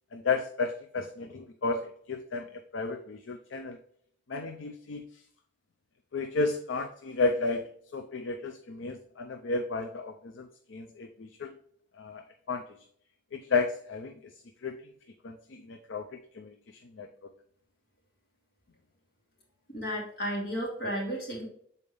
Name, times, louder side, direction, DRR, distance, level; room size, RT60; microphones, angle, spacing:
voice 1, 0.1-3.8 4.3-5.1 6.1-11.5 11.9-12.2 12.5-12.7 13.3-14.3 14.6-14.8 15.2-16.5 16.9-17.1, left 3 dB, 65° left, 6 dB, 0.5 m, -33 dB
voice 2, 19.7-21.5, equal, 50° left, -3 dB, 2.7 m, -33 dB
6.9 x 4.1 x 3.4 m, 0.64 s
head